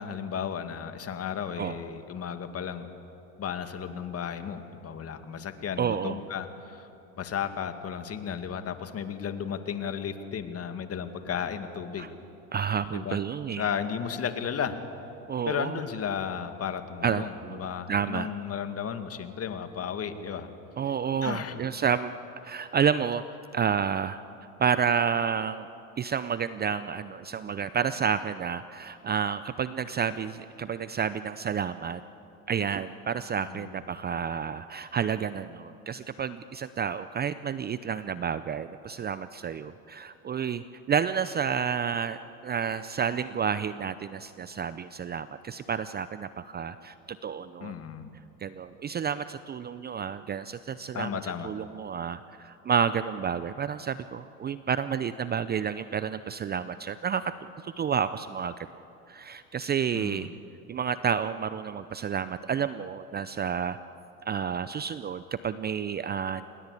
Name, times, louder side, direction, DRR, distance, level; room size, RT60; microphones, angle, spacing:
voice 1, 0.0-2.9 3.4-6.9 7.2-12.1 12.9-13.2 13.6-14.8 15.5-20.5 21.2-21.6 33.4-33.7 47.6-48.1 50.9-51.5 59.9-60.3, left 7 dB, 35° left, 8 dB, 2.2 m, -34 dB
voice 2, 5.8-6.2 12.0-12.1 12.5-13.7 15.3-15.8 17.0-18.3 20.8-22.1 22.4-23.2 23.5-24.2 24.6-25.7 26.0-32.0 32.5-47.7 48.4-57.3 57.6-58.5 59.1-60.3 60.7-63.8 64.3-66.5, right 7 dB, 25° right, 14 dB, 0.6 m, -30 dB
28.0 x 21.0 x 8.4 m, 2.9 s
hypercardioid pair, 95°, 41 cm